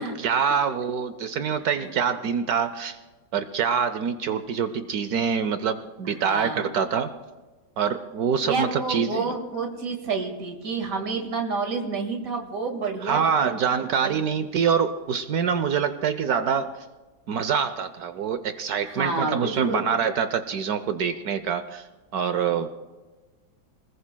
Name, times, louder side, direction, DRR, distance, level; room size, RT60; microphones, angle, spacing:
voice 1, 0.0-3.0 3.3-7.1 7.8-9.3 13.0-16.7 17.3-21.9 22.1-22.7, right 7 dB, 65° right, 12 dB, 1.0 m, -25 dB
voice 2, 6.0-6.7 8.4-13.5 14.0-14.2 18.9-19.9, right 4 dB, 50° right, 3 dB, 2.2 m, -29 dB
26.0 x 20.5 x 2.2 m, 1.3 s
omnidirectional pair, 2.0 m